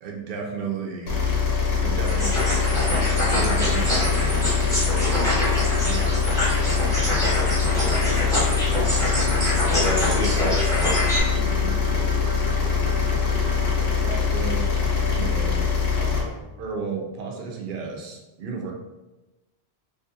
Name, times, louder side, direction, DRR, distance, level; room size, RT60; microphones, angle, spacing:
voice 1, 0.0-1.2 1.8-2.8 3.2-7.5 9.0-9.1 13.7-14.6 15.0-15.6 15.9-18.7, right 4 dB, 60° right, 1 dB, 0.6 m, -34 dB
sound 1, 1.1-16.2, left 5 dB, 70° left, 0.9 m, -23 dB
sound 2, 2.1-11.2, left 1 dB, 5° left, 0.8 m, -26 dB
sound 3, 2.6-15.4, left 1 dB, 85° right, 0.9 m, -36 dB
voice 2, 9.0-11.8, left 2 dB, 55° left, -6 dB, 0.5 m, -31 dB
2.6 x 2.5 x 2.5 m, 1.1 s
omnidirectional pair, 1.1 m